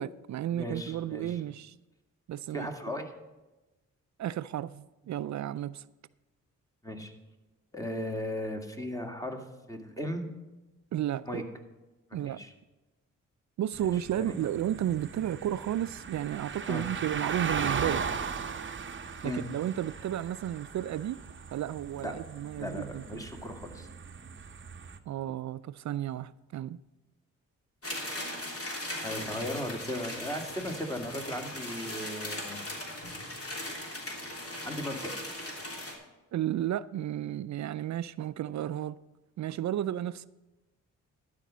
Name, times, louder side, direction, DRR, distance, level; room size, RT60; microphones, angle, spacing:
voice 1, 0.0-1.7 2.3-2.7 4.2-5.8 10.9-11.4 12.1-12.4 13.6-18.1 19.2-21.2 21.5-23.2 25.1-26.8 36.3-39.0 39.4-40.3, right 11 dB, 55° right, 0.4 m, -33 dB
voice 2, 0.5-1.4 2.5-3.1 6.8-7.1 7.7-9.4 9.7-10.2 11.3-11.4 12.3-12.5 13.8-13.9 14.2-14.5 16.7-16.9 19.2-19.5 22.0-22.1 22.6-23.9 29.0-32.6 34.6-35.1, left 1 dB, 10° left, 1.9 m, -36 dB
sound 1, 13.7-25.0, right 6 dB, 35° right, 0.8 m, -38 dB
sound 2, 27.8-35.9, left 1 dB, 40° left, 3.0 m, -38 dB
12.0 x 5.2 x 7.4 m
supercardioid pair, 50°, 33 cm